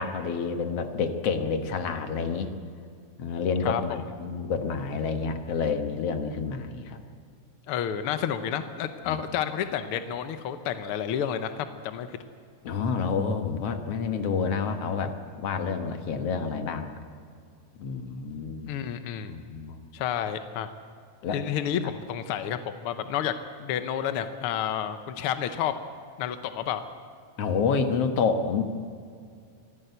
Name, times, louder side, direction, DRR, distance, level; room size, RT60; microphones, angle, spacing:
voice 1, 0.0-2.5 3.2-7.0 9.0-9.2 12.6-16.9 17.8-18.7 19.3-19.8 21.2-21.4 27.4-28.6, left 5 dB, 55° left, 7 dB, 2.2 m, -28 dB
voice 2, 3.6-4.0 7.7-12.2 18.6-19.3 19.9-20.7 21.3-25.7 26.2-26.8, left 9 dB, 75° left, 9 dB, 1.3 m, -30 dB
25.0 x 15.5 x 8.1 m, 2.2 s
omnidirectional pair, 3.6 m